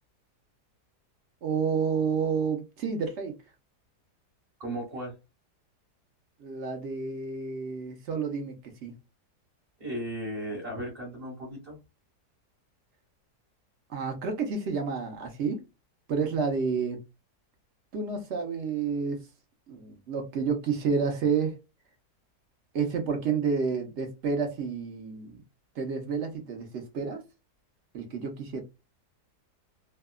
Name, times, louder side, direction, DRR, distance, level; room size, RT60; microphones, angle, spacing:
voice 1, 1.4-3.4 6.4-8.9 13.9-15.6 16.1-17.0 17.9-19.3 19.7-21.6 22.7-25.4 25.7-27.2 27.9-28.6, right 5 dB, 55° right, 0.9 m, -30 dB
voice 2, 4.6-5.2 9.8-11.8, right 1 dB, 25° right, 1.3 m, -36 dB
2.7 x 2.3 x 2.3 m
omnidirectional pair, 1.8 m